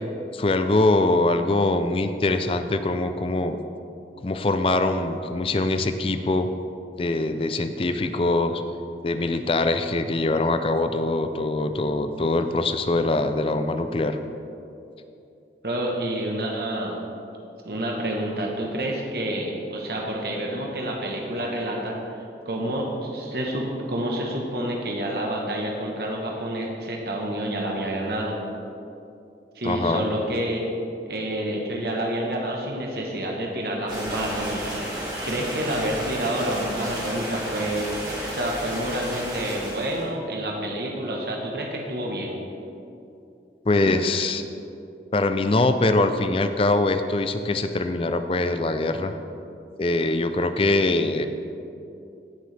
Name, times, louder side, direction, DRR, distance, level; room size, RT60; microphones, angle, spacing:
voice 1, 0.3-3.6 4.2-6.5 7.0-8.6 9.0-14.2 29.6-30.1 43.7-44.4 45.1-49.1 49.8-51.3, left 2 dB, 30° left, 9 dB, 0.4 m, -23 dB
voice 2, 15.6-17.0 17.6-28.4 29.5-30.7 31.0-38.0 38.3-42.4, right 1 dB, 60° right, -1 dB, 1.1 m, -28 dB
sound 1, 33.9-40.1, equal, 25° right, 2.3 m, -32 dB
16.0 x 6.5 x 3.3 m, 2.7 s
head